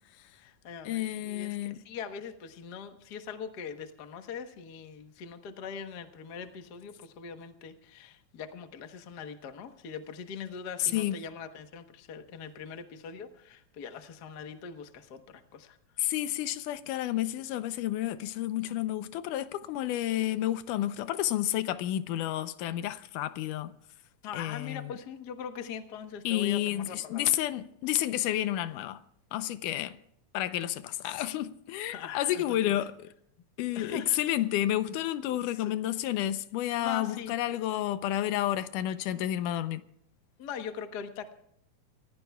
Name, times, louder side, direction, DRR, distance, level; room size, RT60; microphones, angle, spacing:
voice 1, 0.3-15.8 24.2-27.3 31.9-32.7 33.7-34.2 35.3-35.7 36.8-37.3 40.4-41.3, left 6 dB, 65° left, 1.0 m, -42 dB
voice 2, 0.9-1.8 10.8-11.1 16.0-23.7 24.3-25.0 26.3-29.0 29.3-30.0 30.3-33.1 33.6-39.8, left 13 dB, 90° left, 2.3 m, -30 dB
28.5 x 16.0 x 2.3 m
omnidirectional pair, 3.6 m